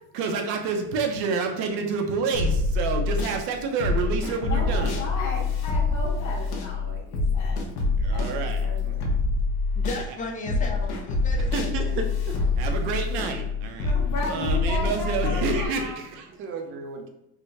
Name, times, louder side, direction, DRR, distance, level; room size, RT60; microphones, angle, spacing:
voice 1, 0.1-5.0 8.0-8.9 12.6-13.9 14.3-16.3, right 5 dB, 65° right, 4 dB, 0.8 m, -28 dB
sound 1, 2.3-3.4 3.8-10.1 10.5-15.7, left 3 dB, 65° left, 1.0 m, -26 dB
voice 2, 4.5-9.1 13.8-16.0, left 3 dB, 40° left, -5 dB, 1.3 m, -35 dB
voice 3, 9.7-11.7 12.6-12.7, left 2 dB, 20° left, 1 dB, 0.5 m, -35 dB
voice 4, 11.4-12.4 16.4-17.1, right 4 dB, 30° right, 4 dB, 0.5 m, -32 dB
3.6 x 2.2 x 4.0 m, 0.83 s
cardioid pair, 145°, 41 cm